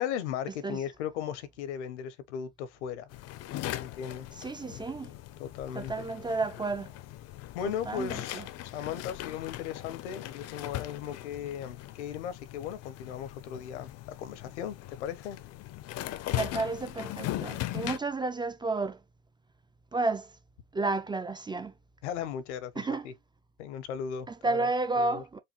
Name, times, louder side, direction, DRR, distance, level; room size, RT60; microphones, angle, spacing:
voice 1, 0.0-3.1 3.8-4.3 5.4-6.1 7.5-8.4 8.7-13.9 14.2-15.4 22.0-23.1 23.6-24.7 25.0-25.2, left 9 dB, 75° left, 1.0 m, -37 dB
sound 1, 3.1-18.0, left 14 dB, 45° left, 0.7 m, -39 dB
voice 2, 4.4-5.1 5.7-6.9 7.9-8.5 16.3-19.0 19.9-20.4 20.7-21.7 22.8-23.1 24.3-25.4, right 3 dB, 15° right, 0.5 m, -31 dB
4.8 x 2.6 x 2.9 m
hypercardioid pair, 85°, 35 cm